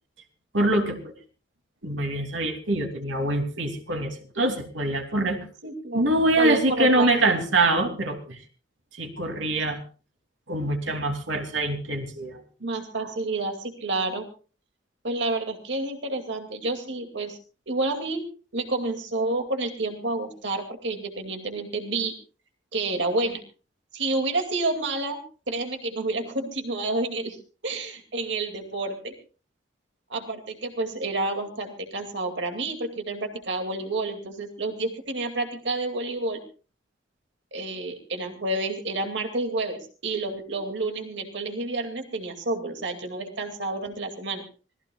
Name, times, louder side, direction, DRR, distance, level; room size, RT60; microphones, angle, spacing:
voice 1, 0.5-1.1 1.8-5.4 5.9-8.4 8.9-9.8 10.5-12.4, right 2 dB, 85° right, 4 dB, 2.8 m, -24 dB
voice 2, 5.6-6.1 6.4-7.3 12.6-14.3 15.0-17.4 17.7-18.3 18.5-22.1 22.7-23.4 23.9-25.2 25.5-27.4 27.6-29.1 30.1-36.4 37.5-44.4, right 2 dB, 70° right, 4 dB, 2.4 m, -29 dB
25.0 x 18.5 x 2.4 m, 0.37 s
head